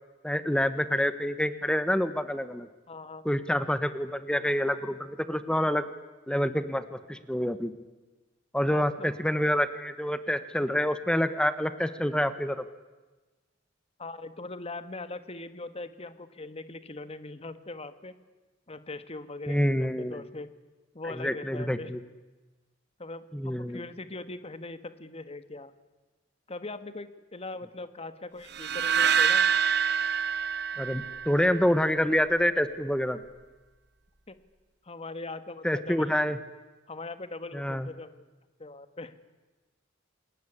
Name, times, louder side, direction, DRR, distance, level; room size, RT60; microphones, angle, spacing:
voice 1, 0.2-2.7 3.2-5.8 6.3-7.8 8.5-12.6 19.5-20.2 21.2-22.0 23.3-23.8 30.8-33.2 35.6-36.4 37.5-37.9, equal, 5° left, 12 dB, 1.0 m, -27 dB
voice 2, 2.9-3.3 8.7-9.1 14.0-18.1 18.7-20.5 20.9-21.9 23.0-25.7 26.5-29.5 34.3-34.4 34.8-36.2 36.9-38.2 38.6-39.1, left 2 dB, 30° left, 12 dB, 1.4 m, -41 dB
sound 1, 28.5-31.7, right 7 dB, 60° right, 1.1 m, -26 dB
28.0 x 20.5 x 9.9 m, 1.2 s
head